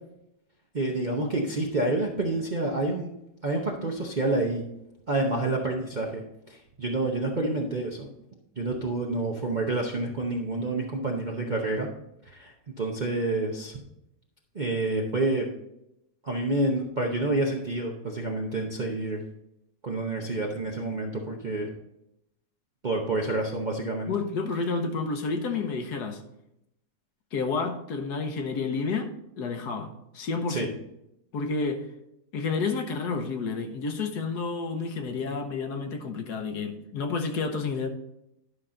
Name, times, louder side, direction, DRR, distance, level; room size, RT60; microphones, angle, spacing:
voice 1, 0.7-3.1 3.4-4.6 5.1-8.1 8.6-11.9 12.3-13.8 14.5-15.5 16.2-19.2 19.8-21.7 22.8-24.1 30.5-30.7, right 2 dB, 40° right, 0.6 m, -28 dB
voice 2, 24.1-26.2 27.3-30.7 31.3-31.9 32.3-37.9, left 4 dB, 65° left, 1.4 m, -30 dB
11.0 x 5.8 x 3.8 m
omnidirectional pair, 1.9 m